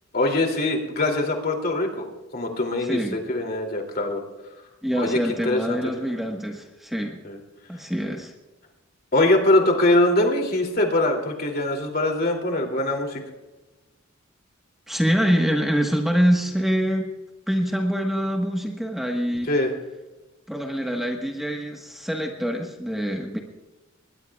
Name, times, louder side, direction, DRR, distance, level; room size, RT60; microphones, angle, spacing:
voice 1, 0.1-2.1 2.3-4.2 4.9-5.8 7.2-7.4 9.1-13.2 19.5-19.7, left 2 dB, 50° left, 1 dB, 2.8 m, -22 dB
voice 2, 2.8-3.2 4.8-7.2 7.7-8.3 14.9-17.1 17.5-19.5 20.5-23.4, equal, ahead, 1 dB, 1.3 m, -25 dB
21.5 x 20.0 x 2.4 m, 1.1 s
head